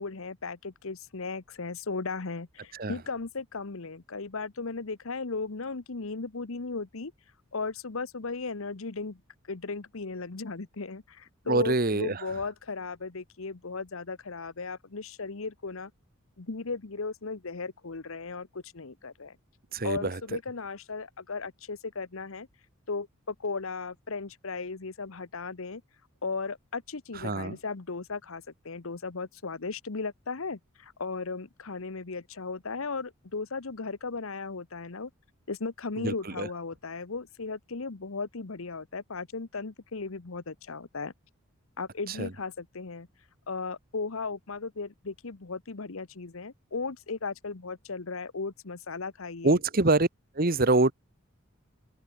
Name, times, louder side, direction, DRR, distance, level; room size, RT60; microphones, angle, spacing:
voice 1, 0.0-7.1 7.5-9.2 9.5-15.9 16.4-19.4 19.8-22.5 22.9-25.8 26.2-35.1 35.5-41.1 41.8-43.1 43.5-49.6, left 4 dB, 70° left, 1.0 m, -36 dB
voice 2, 11.4-12.2 19.7-20.2 27.1-27.6 36.0-36.5 42.1-42.3 49.4-50.1 50.3-50.9, right 2 dB, 45° right, 1.4 m, -25 dB
open air
head